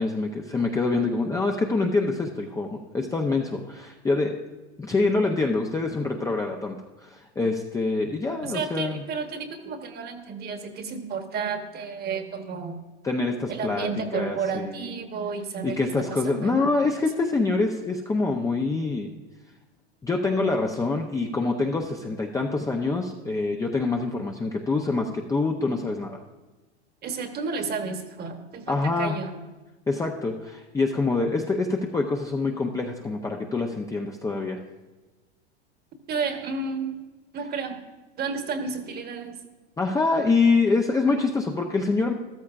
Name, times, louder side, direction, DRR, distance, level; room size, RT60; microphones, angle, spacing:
voice 1, 0.0-4.4 4.8-9.0 13.0-13.9 14.1-14.9 15.6-19.1 20.0-26.2 28.7-29.2 29.9-34.6 39.8-42.1, left 3 dB, 10° left, 1 dB, 0.5 m, -25 dB
voice 2, 8.4-12.8 13.5-15.8 16.1-16.5 27.0-29.3 36.1-37.0 37.3-37.8 38.2-39.4, right 5 dB, 30° right, 6 dB, 1.2 m, -31 dB
13.5 x 13.0 x 2.4 m, 1.2 s
hypercardioid pair, 115°, 33 cm